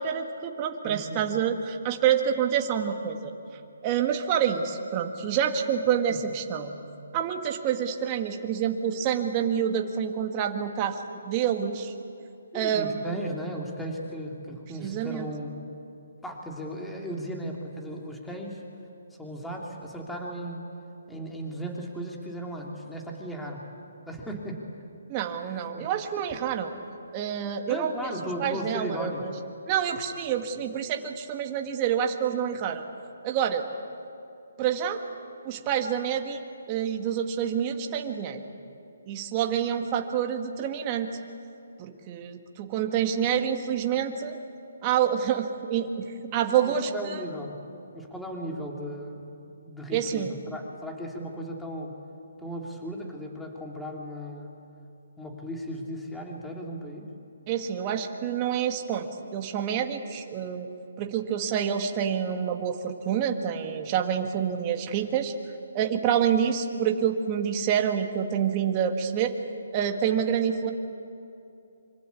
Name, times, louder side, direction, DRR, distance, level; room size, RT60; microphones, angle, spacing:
voice 1, 0.0-3.3 3.8-6.7 7.1-11.9 12.5-13.0 14.8-15.3 25.1-26.7 27.1-27.9 28.4-29.3 29.7-32.9 33.2-33.6 34.6-35.0 35.4-38.4 39.1-41.1 41.8-44.4 44.8-47.2 49.9-50.3 57.5-60.7 61.0-65.3 65.7-69.4 69.7-70.7, right 8 dB, 30° right, 4 dB, 2.0 m, -27 dB
voice 2, 0.8-1.2 6.1-6.2 12.5-15.6 16.2-18.6 19.1-20.6 21.1-23.6 24.1-24.6 25.2-25.8 27.4-29.2 46.6-47.6 47.9-51.9 52.4-54.6 55.2-57.1, equal, 5° left, 0 dB, 3.3 m, -36 dB
25.5 x 25.0 x 8.6 m, 2.7 s
figure-of-eight pair, 145°, 0 cm